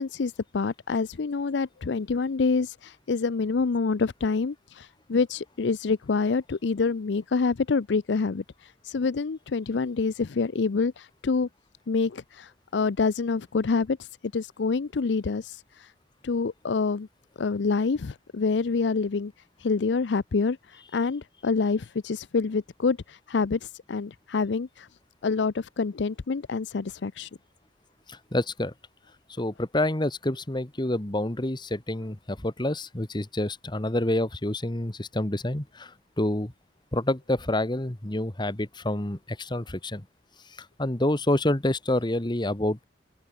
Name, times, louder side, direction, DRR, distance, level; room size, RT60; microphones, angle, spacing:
voice 1, 0.0-11.5 11.9-14.1 14.3-15.9 16.2-17.1 17.4-19.3 19.6-24.9 25.2-27.3, left 4 dB, 85° left, 0.5 m, -27 dB
voice 2, 28.1-28.7 29.4-36.5 36.9-40.0 40.6-42.8, left 1 dB, 25° left, 1.5 m, -28 dB
open air
head